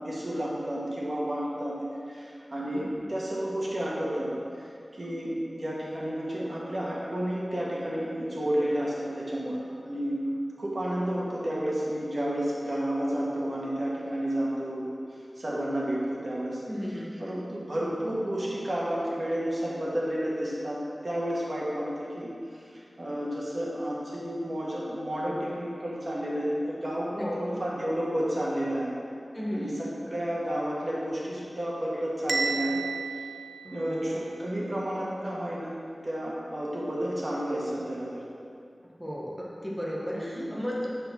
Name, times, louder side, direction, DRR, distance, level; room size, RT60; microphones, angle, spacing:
voice 1, 0.0-1.8 2.1-4.7 4.9-10.2 10.6-14.9 15.4-16.6 17.2-28.9 29.5-32.8 33.7-35.8 36.0-38.2 40.1-40.5, equal, 50° right, -6 dB, 1.8 m, -31 dB
voice 2, 2.7-3.1 16.7-17.2 27.1-27.5 29.3-29.8 33.6-34.2 39.0-40.9, equal, ahead, -5 dB, 1.2 m, -34 dB
Bell, 32.3-34.3, right 4 dB, 85° right, 0.5 m, -32 dB
8.9 x 4.3 x 5.8 m, 2.4 s
wide cardioid pair, 75°, 0 cm